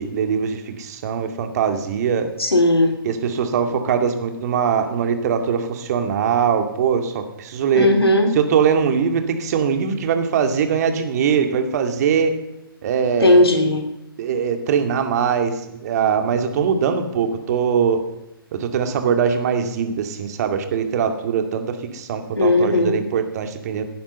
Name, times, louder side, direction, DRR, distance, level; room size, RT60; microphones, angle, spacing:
voice 1, 0.0-2.3 3.0-7.9 8.3-12.4 12.8-13.4 14.2-18.0 18.5-23.8, right 7 dB, 45° right, 7 dB, 2.4 m, -21 dB
voice 2, 2.4-2.9 7.7-8.3 13.2-13.8 22.4-23.0, left 1 dB, 85° left, 5 dB, 3.1 m, -16 dB
16.5 x 10.5 x 6.9 m, 0.89 s
figure-of-eight pair, 130°, 12 cm